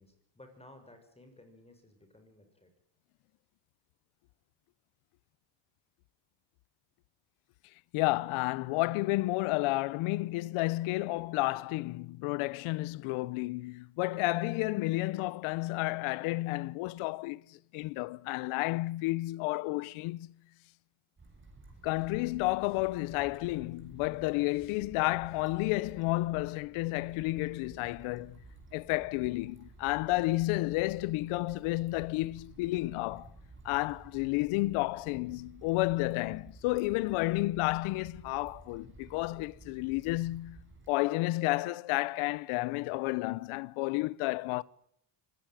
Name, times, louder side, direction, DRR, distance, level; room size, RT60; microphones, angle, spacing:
voice 1, 0.0-2.7, left 1 dB, 10° left, 6.5 m, -56 dB
voice 2, 7.9-17.4 17.7-20.3 21.8-28.4 28.7-33.3 33.6-40.6 40.9-44.6, left 20 dB, 80° left, 0.9 m, -31 dB
sound 1, 21.2-40.9, right 3 dB, 25° right, 7.2 m, -54 dB
24.5 x 18.5 x 9.1 m
supercardioid pair, 100°, 50 cm